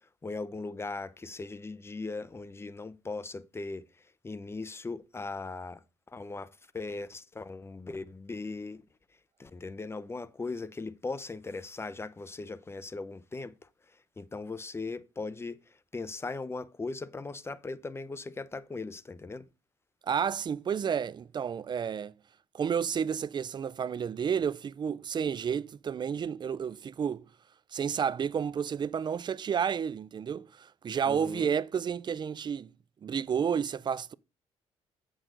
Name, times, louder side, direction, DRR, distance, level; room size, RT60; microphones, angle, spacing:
voice 1, 0.2-3.8 4.2-5.8 6.1-6.5 6.7-8.8 9.4-13.5 14.2-15.6 15.9-19.4 31.1-31.5, left 3 dB, 20° left, 0.6 m, -38 dB
voice 2, 20.0-22.1 22.5-27.3 27.7-32.7 33.0-34.1, right 7 dB, 40° right, 0.4 m, -31 dB
7.8 x 6.3 x 3.8 m
cardioid pair, 85°, 12 cm